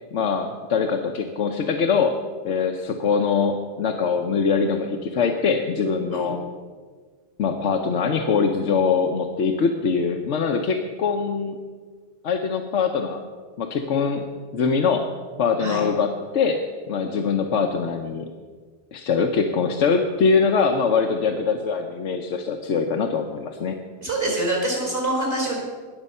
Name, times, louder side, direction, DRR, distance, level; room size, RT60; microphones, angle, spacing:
voice 1, 0.1-2.2 2.4-6.4 7.4-11.6 12.2-13.2 13.6-15.1 15.4-18.3 18.9-23.8, left 5 dB, 85° left, 3 dB, 1.1 m, -23 dB
voice 2, 24.0-25.6, right 1 dB, 55° right, -1 dB, 4.9 m, -25 dB
20.5 x 7.4 x 5.5 m, 1.5 s
omnidirectional pair, 1.2 m